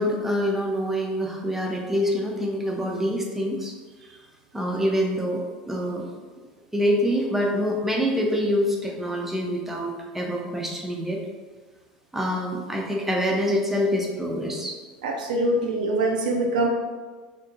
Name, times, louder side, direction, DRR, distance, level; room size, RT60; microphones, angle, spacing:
voice 1, 0.0-3.7 4.5-6.1 6.7-11.2 12.1-14.8, equal, 5° right, 0 dB, 0.4 m, -25 dB
voice 2, 15.0-16.7, right 2 dB, 65° right, 1 dB, 0.3 m, -23 dB
2.4 x 2.1 x 2.7 m, 1.4 s
figure-of-eight pair, 70°, 5 cm